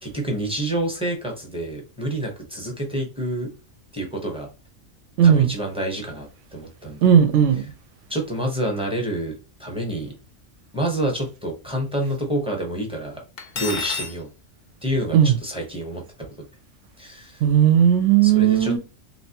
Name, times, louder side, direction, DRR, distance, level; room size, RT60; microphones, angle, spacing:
voice 1, 0.0-3.5 3.9-4.5 5.2-7.1 8.1-10.1 10.7-13.2 13.5-14.3 14.8-16.3 17.0-17.4 18.2-18.8, right 1 dB, 5° right, 0.7 m, -28 dB
voice 2, 5.2-5.5 7.0-7.7 15.1-15.3 17.4-18.8, right 9 dB, 70° right, 0.9 m, -16 dB
Cutlery silverware, 13.4-14.2, left 5 dB, 55° left, 0.7 m, -29 dB
3.2 x 2.9 x 2.8 m
omnidirectional pair, 1.4 m